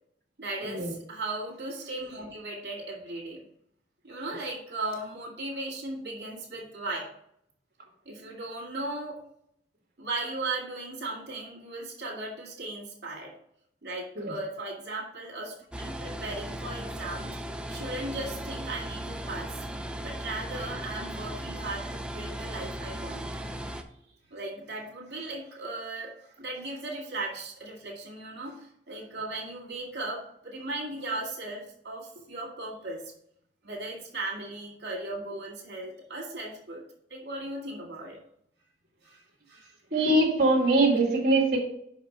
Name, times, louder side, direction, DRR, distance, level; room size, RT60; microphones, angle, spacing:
voice 1, 0.4-3.4 4.0-7.1 8.1-9.2 10.0-13.3 13.8-19.6 20.0-23.3 24.3-33.0 33.6-36.8 37.1-38.2 39.0-39.7, right 2 dB, 70° right, -2 dB, 2.0 m, -37 dB
sound 1, 15.7-23.8, right 1 dB, 5° right, 0.5 m, -37 dB
voice 2, 39.9-41.6, right 2 dB, 50° right, -3 dB, 1.9 m, -22 dB
5.6 x 5.0 x 5.5 m, 0.69 s
head